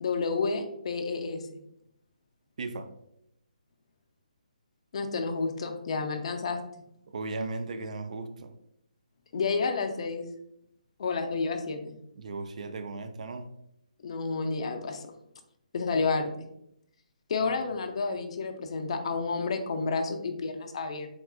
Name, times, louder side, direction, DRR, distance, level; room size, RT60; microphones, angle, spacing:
voice 1, 0.0-1.4 4.9-6.6 9.3-10.3 11.0-12.0 14.0-15.0 15.7-16.3 17.3-21.1, left 4 dB, 45° left, 6 dB, 0.4 m, -30 dB
voice 2, 2.6-2.9 7.1-8.5 12.2-13.5 17.4-17.5, right 3 dB, 55° right, 9 dB, 0.3 m, -36 dB
3.6 x 2.4 x 2.3 m, 0.79 s
hypercardioid pair, 155°, 4 cm